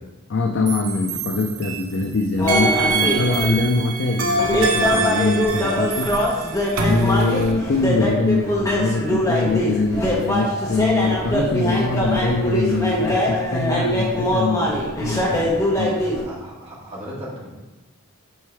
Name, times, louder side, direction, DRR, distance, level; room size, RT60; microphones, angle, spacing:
voice 1, 0.3-6.1 6.8-16.2, left 3 dB, 55° left, 3 dB, 0.5 m, -23 dB
sound 1, 0.7-2.0 2.5-7.5, right 3 dB, 65° right, 0.7 m, -25 dB
sound 2, 2.4-3.5 4.4-16.2, left 1 dB, 15° left, 1.1 m, -22 dB
voice 2, 16.1-17.5, equal, 25° right, -7 dB, 1.9 m, -36 dB
7.8 x 4.5 x 3.4 m, 1.1 s
head